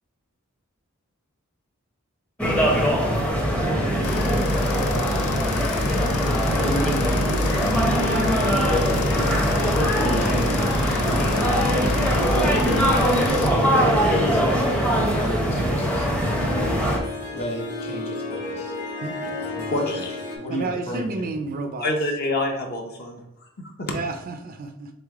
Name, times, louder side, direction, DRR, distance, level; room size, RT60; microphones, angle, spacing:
sound 1, 2.4-17.0, equal, 5° left, 0.6 m, -22 dB
voice 1, 3.6-6.0 6.6-7.4 9.5-10.7 11.2-12.0 13.3-14.4 14.7-16.6 17.3-18.7 19.0-20.0 20.4-21.3, equal, 30° left, -1 dB, 1.1 m, -34 dB
sound 2, 4.0-13.5, left 2 dB, 90° left, 0.4 m, -28 dB
Harp, 5.5-20.4, left 2 dB, 70° left, 1.0 m, -34 dB
voice 2, 19.7-20.1 21.8-23.2 23.6-23.9, left 1 dB, 45° left, 1 dB, 0.7 m, -26 dB
voice 3, 20.5-21.9 23.9-24.9, right 3 dB, 40° right, 7 dB, 0.4 m, -30 dB
3.8 x 3.1 x 3.5 m, 0.79 s
head